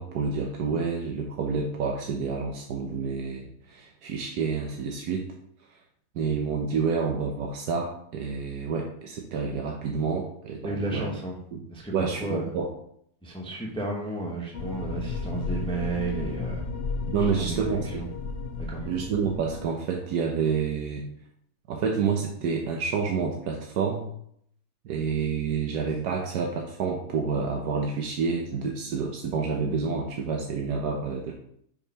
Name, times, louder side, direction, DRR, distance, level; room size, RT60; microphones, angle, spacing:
voice 1, 0.0-5.3 6.1-11.1 11.5-11.6 11.9-12.7 17.1-18.1 18.8-21.0 21.7-24.1 24.8-31.3, right 5 dB, 85° right, 1 dB, 1.4 m, -29 dB
voice 2, 10.6-11.4 11.7-12.5 13.2-16.6 17.1-18.1 18.6-18.9, right 3 dB, 5° left, -1 dB, 0.9 m, -33 dB
sound 1, 14.5-19.6, left 4 dB, 60° left, 0.6 m, -33 dB
5.3 x 4.7 x 5.5 m, 0.69 s
omnidirectional pair, 1.7 m